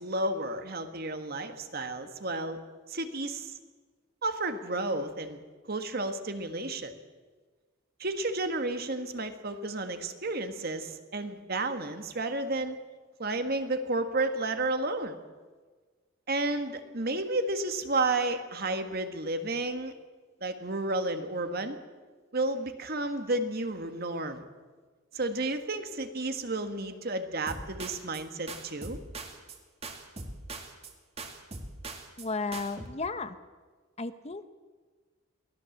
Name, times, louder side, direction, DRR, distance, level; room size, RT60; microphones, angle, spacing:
voice 1, 0.0-2.6 2.9-3.5 4.2-5.4 5.7-6.9 8.0-12.8 13.2-15.2 16.3-19.9 20.4-21.8 22.3-24.4 25.1-29.0, right 2 dB, 50° right, 8 dB, 1.7 m, -32 dB
sound 1, 27.5-28.2 28.5-29.6 29.8-30.9 31.2-32.3 32.5-32.9, right 3 dB, 30° right, 2.3 m, -41 dB
voice 2, 32.2-33.4 34.0-34.5, left 3 dB, 30° left, 11 dB, 0.9 m, -34 dB
23.5 x 17.0 x 7.3 m, 1.4 s
head